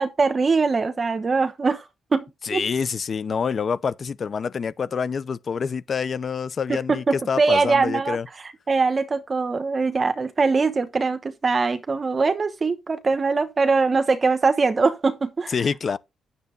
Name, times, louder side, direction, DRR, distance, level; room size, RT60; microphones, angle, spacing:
voice 1, 0.0-1.8 2.1-2.6 6.7-8.2 8.7-15.5, right 4 dB, 35° right, 1.0 m, -22 dB
voice 2, 2.4-8.3 15.5-16.0, left 6 dB, 45° left, 0.7 m, -26 dB
9.5 x 6.9 x 3.9 m
cardioid pair, 90°, 0 cm